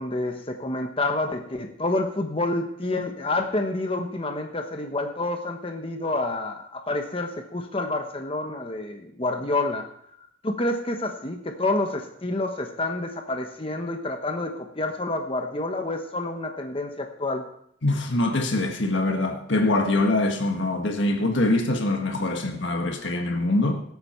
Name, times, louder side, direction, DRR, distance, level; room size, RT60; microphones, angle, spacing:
voice 1, 0.0-9.9 10.4-17.4, left 2 dB, 30° left, 1.0 m, -28 dB
voice 2, 17.8-23.8, left 2 dB, 65° left, 1.6 m, -24 dB
18.0 x 8.3 x 4.4 m
head